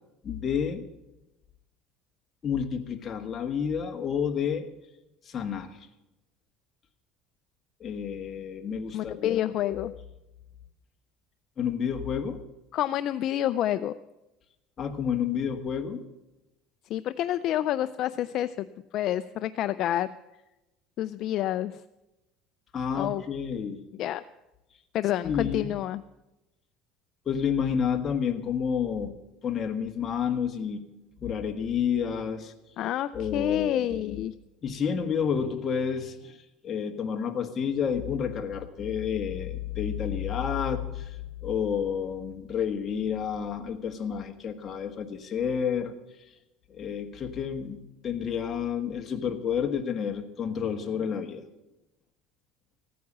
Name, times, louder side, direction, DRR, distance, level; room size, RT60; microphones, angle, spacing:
voice 1, 0.2-0.9 2.4-4.7 5.2-5.8 7.8-9.9 11.6-12.4 14.8-16.0 22.7-23.8 25.2-25.8 27.2-29.1 29.4-30.9 31.2-32.5 33.1-34.2 34.6-45.9 46.7-51.5, left 7 dB, 30° left, 4 dB, 1.4 m, -30 dB
voice 2, 8.9-9.9 12.7-13.9 16.9-18.7 18.9-20.1 21.0-21.8 22.9-23.2 24.0-24.2 24.9-26.0 32.8-34.3, left 12 dB, 50° left, 12 dB, 0.4 m, -28 dB
15.0 x 9.4 x 7.3 m, 0.97 s
cardioid pair, 140°, 0 cm